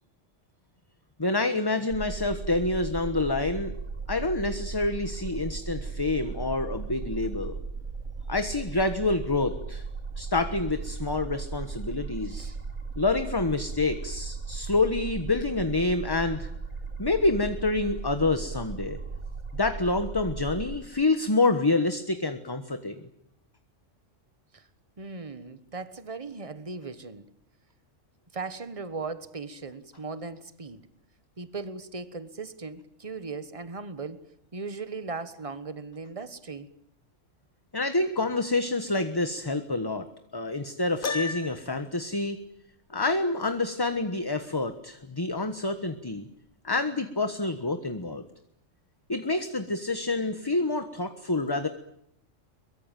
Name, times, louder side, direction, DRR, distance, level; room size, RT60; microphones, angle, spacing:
voice 1, 1.2-3.7 4.1-7.5 8.3-9.8 10.2-12.5 13.0-16.5 17.0-19.0 19.5-23.0 37.7-40.0 40.3-42.4 42.9-46.2 46.6-48.3 49.1-51.7, left 2 dB, 20° left, 9 dB, 1.3 m, -27 dB
sound 1, 1.9-20.8, right 4 dB, 65° right, 3.5 m, -37 dB
voice 2, 12.2-12.6 24.5-24.6 25.0-27.3 28.3-30.8 31.4-34.2 34.5-36.7, right 4 dB, 25° right, 13 dB, 1.4 m, -38 dB
Piano, 41.0-41.9, left 4 dB, 45° left, 1.4 m, -32 dB
23.0 x 23.0 x 9.2 m, 0.74 s
omnidirectional pair, 1.3 m